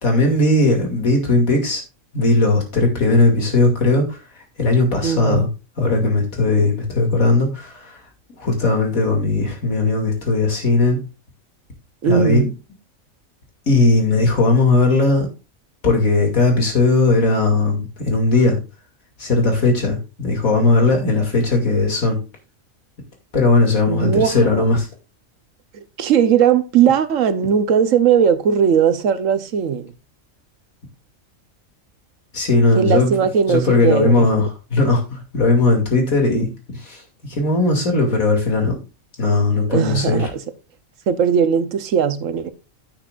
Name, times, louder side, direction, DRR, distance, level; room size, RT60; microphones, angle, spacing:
voice 1, 0.0-1.8 2.1-4.2 4.6-5.5 5.8-7.9 8.4-11.0 12.0-12.4 13.7-15.3 15.8-18.6 19.2-22.2 23.3-24.9 32.3-33.1 33.5-36.5 36.8-38.7 39.2-40.3, left 2 dB, 85° left, 2.9 m, -17 dB
voice 2, 5.0-5.4 12.0-12.5 23.9-24.5 25.7-29.9 32.7-34.3 39.7-40.3 41.1-42.5, right 8 dB, 70° right, 1.2 m, -18 dB
10.0 x 8.5 x 2.5 m
omnidirectional pair, 1.4 m